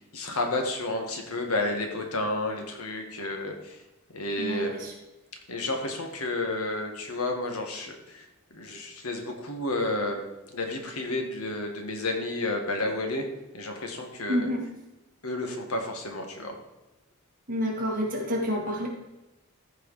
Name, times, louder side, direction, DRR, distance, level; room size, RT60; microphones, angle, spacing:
voice 1, 0.1-3.8 4.1-4.8 5.5-10.2 10.5-13.3 13.5-14.5 15.2-16.6, left 2 dB, 80° left, 3 dB, 1.8 m, -31 dB
voice 2, 4.4-4.9 14.3-14.6 17.5-18.9, equal, 40° right, -1 dB, 2.5 m, -28 dB
14.5 x 4.9 x 4.9 m, 1.0 s
head